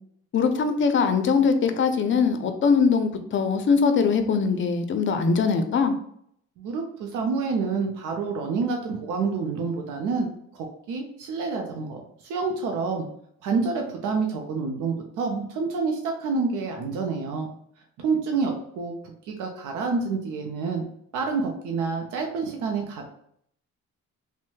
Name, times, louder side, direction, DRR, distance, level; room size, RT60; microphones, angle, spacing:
voice 1, 0.3-5.9, left 5 dB, 40° left, 0.5 m, -22 dB
voice 2, 6.6-10.3 10.5-13.1 13.4-17.5 18.0-20.9 21.1-23.1, right 4 dB, 85° right, 0.5 m, -28 dB
3.1 x 2.1 x 3.1 m
cardioid pair, 90°, 30 cm